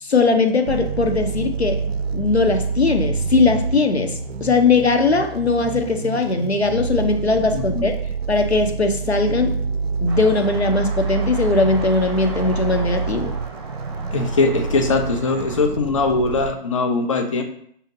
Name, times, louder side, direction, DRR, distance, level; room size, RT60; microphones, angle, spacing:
voice 1, 0.0-1.8 2.1-8.0 8.3-9.5 10.0-13.3, left 3 dB, 90° left, 5 dB, 0.8 m, -19 dB
sound 1, 0.7-16.5, right 5 dB, 75° right, 0.5 m, -27 dB
voice 2, 7.5-7.8 14.1-17.4, left 3 dB, 30° left, 5 dB, 0.4 m, -21 dB
sound 2, 10.1-15.6, right 2 dB, 25° right, 0.6 m, -37 dB
6.3 x 2.7 x 2.7 m, 0.66 s
figure-of-eight pair, 140°, 32 cm